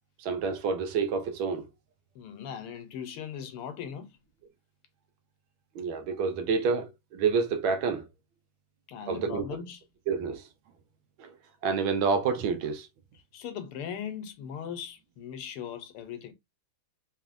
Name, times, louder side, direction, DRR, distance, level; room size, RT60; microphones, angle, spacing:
voice 1, 0.2-1.7 5.8-8.0 9.1-9.5 10.1-10.4 11.2-11.3 11.6-12.9, right 5 dB, 75° right, 1.4 m, -28 dB
voice 2, 2.1-4.2 8.9-9.8 13.3-16.3, left 8 dB, 90° left, 1.7 m, -39 dB
4.9 x 3.1 x 2.5 m
omnidirectional pair, 2.4 m